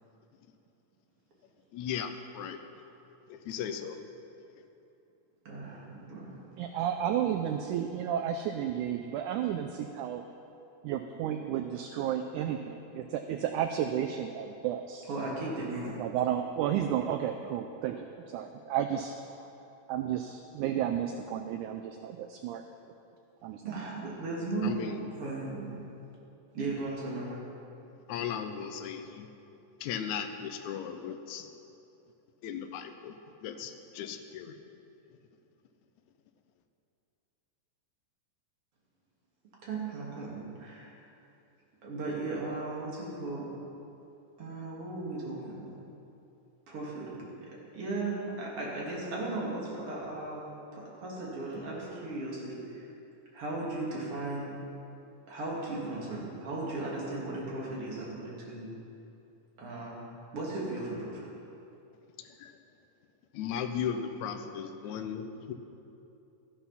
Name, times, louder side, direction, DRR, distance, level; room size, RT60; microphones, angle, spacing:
voice 1, 1.7-2.6 3.3-4.0 24.6-25.0 28.1-29.3 29.8-31.5 32.4-34.6 62.2-62.5 63.3-65.5, left 8 dB, 75° left, 6 dB, 1.8 m, -37 dB
voice 2, 5.4-6.3 15.1-16.0 23.6-25.8 26.5-27.4 39.6-41.0 41.8-43.5 44.4-45.8 46.7-52.9 53.3-54.6 55.3-58.7 59.6-60.0 60.3-61.3, right 2 dB, 45° right, -4 dB, 3.0 m, -36 dB
voice 3, 6.6-10.2 10.8-15.0 16.0-19.5 19.9-22.6 23.4-23.8, right 9 dB, 80° right, 6 dB, 1.8 m, -32 dB
13.5 x 10.0 x 5.7 m, 2.8 s
omnidirectional pair, 4.0 m